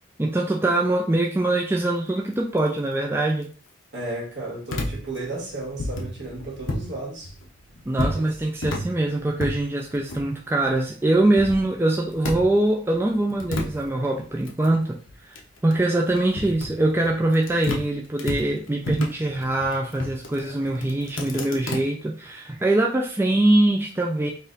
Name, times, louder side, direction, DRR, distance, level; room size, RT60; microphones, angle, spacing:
voice 1, 0.2-3.5 7.9-15.0 15.3-15.4 15.6-24.3, right 2 dB, 10° right, 0.4 m, -23 dB
voice 2, 3.9-7.3 8.1-8.2, right 2 dB, 60° right, 1.7 m, -33 dB
sound 1, 4.7-6.9 7.2-10.8 11.1-12.7 12.9-17.9 18.2-21.8, left 1 dB, 75° left, 0.9 m, -32 dB
4.1 x 2.6 x 3.9 m
head